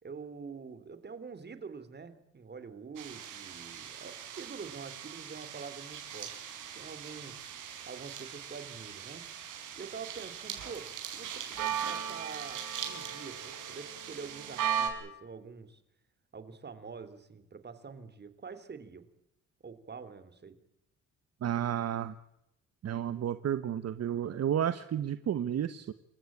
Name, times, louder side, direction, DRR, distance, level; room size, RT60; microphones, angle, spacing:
voice 1, 0.0-6.5 6.7-7.5 7.9-9.2 9.7-15.8 16.3-19.1 19.6-20.6, right 5 dB, 35° right, 12 dB, 3.1 m, -46 dB
sound 1, 3.0-14.9, right 9 dB, 80° right, 5.7 m, -39 dB
voice 2, 21.4-22.1 22.8-25.9, right 10 dB, 55° right, 13 dB, 1.1 m, -31 dB
28.0 x 15.5 x 8.7 m, 0.82 s
cardioid pair, 90°, 30 cm